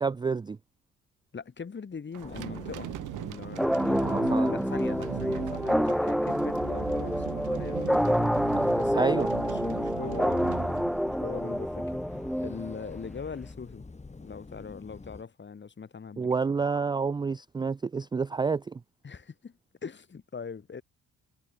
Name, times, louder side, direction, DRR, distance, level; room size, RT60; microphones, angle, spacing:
voice 1, 0.0-0.6 3.8-4.6 8.9-9.3 16.2-18.8, right 5 dB, 15° right, 0.3 m, -29 dB
voice 2, 1.3-13.8 14.2-16.3 19.0-20.8, left 5 dB, 40° left, 5.6 m, -41 dB
sound 1, 2.1-11.6, right 16 dB, 80° right, 1.1 m, -39 dB
sound 2, 2.2-15.2, left 3 dB, 20° left, 4.2 m, -45 dB
sound 3, 3.6-13.0, equal, ahead, 1.0 m, -28 dB
cardioid pair, 90°, 30 cm